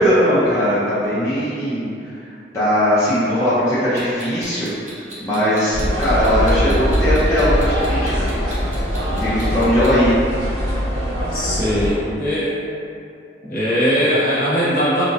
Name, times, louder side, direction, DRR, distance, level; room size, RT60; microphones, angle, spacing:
voice 1, 0.0-1.9 2.1-2.2 2.5-4.7 5.2-8.3 9.1-10.1, equal, 15° left, -13 dB, 0.5 m, -19 dB
Clock, 4.0-10.0, right 1 dB, 40° right, 0.6 m, -39 dB
sound 1, 5.7-11.9, equal, 65° right, 1.4 m, -21 dB
voice 2, 11.3-12.5 13.4-15.0, equal, 50° left, -10 dB, 1.0 m, -20 dB
2.9 x 2.4 x 2.6 m, 2.5 s
head